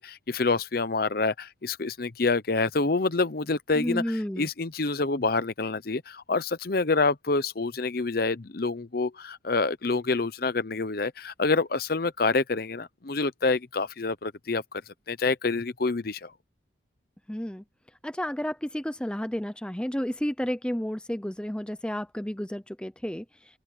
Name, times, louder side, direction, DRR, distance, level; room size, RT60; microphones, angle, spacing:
voice 1, 0.0-14.8 15.1-16.3, left 3 dB, 50° left, 0.8 m, -27 dB
voice 2, 3.8-4.5 17.3-17.6 18.0-23.2, equal, 5° left, 0.5 m, -31 dB
open air
head